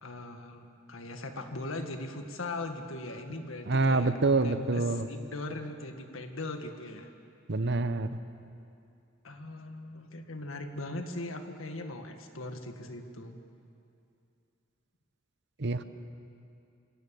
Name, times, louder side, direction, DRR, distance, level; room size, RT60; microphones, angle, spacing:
voice 1, 0.0-7.1 9.2-13.4, left 2 dB, 90° left, 6 dB, 1.8 m, -40 dB
voice 2, 3.7-5.1 7.5-8.1 15.6-15.8, right 3 dB, 60° right, 11 dB, 0.9 m, -26 dB
25.5 x 17.5 x 7.0 m, 2.6 s
head